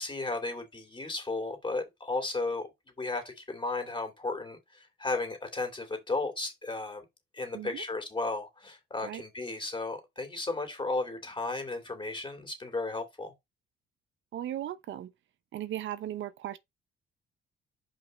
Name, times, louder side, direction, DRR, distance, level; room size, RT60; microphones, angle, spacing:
voice 1, 0.0-2.7 3.0-7.0 7.3-13.3, left 3 dB, 25° left, 3.2 m, -34 dB
voice 2, 14.3-15.1 15.5-16.6, right 12 dB, 75° right, 0.9 m, -37 dB
5.5 x 5.2 x 5.3 m
cardioid pair, 90°, 20 cm